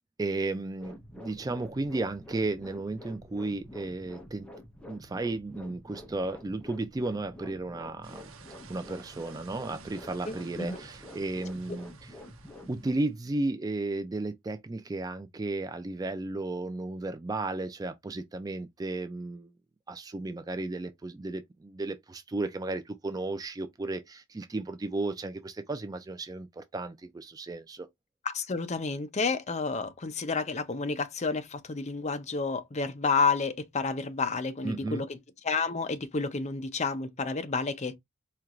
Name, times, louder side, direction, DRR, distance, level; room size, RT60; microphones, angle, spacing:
voice 1, 0.2-4.5 4.8-8.2 8.7-12.1 12.7-19.5 19.9-27.9 34.6-35.0, right 2 dB, 20° right, 0.3 m, -34 dB
sound 1, 0.8-12.9, left 1 dB, 5° left, 0.9 m, -48 dB
sound 2, 8.0-13.1, right 5 dB, 80° right, 0.8 m, -53 dB
voice 2, 10.3-10.8 11.7-11.8 28.2-35.2 35.4-37.9, left 4 dB, 35° left, 0.6 m, -30 dB
4.4 x 2.8 x 2.4 m
head